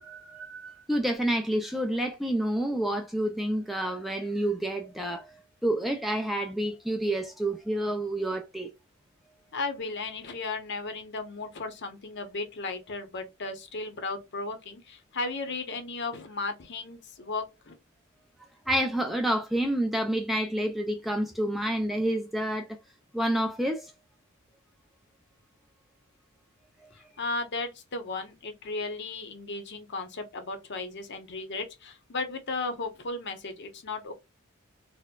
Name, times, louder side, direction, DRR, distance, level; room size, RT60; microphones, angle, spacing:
voice 1, 0.0-8.7 18.7-22.8 23.1-23.9, right 1 dB, ahead, 0.3 m, -29 dB
voice 2, 9.5-17.8 26.9-34.1, left 3 dB, 50° left, 0.8 m, -35 dB
4.2 x 2.1 x 2.2 m
head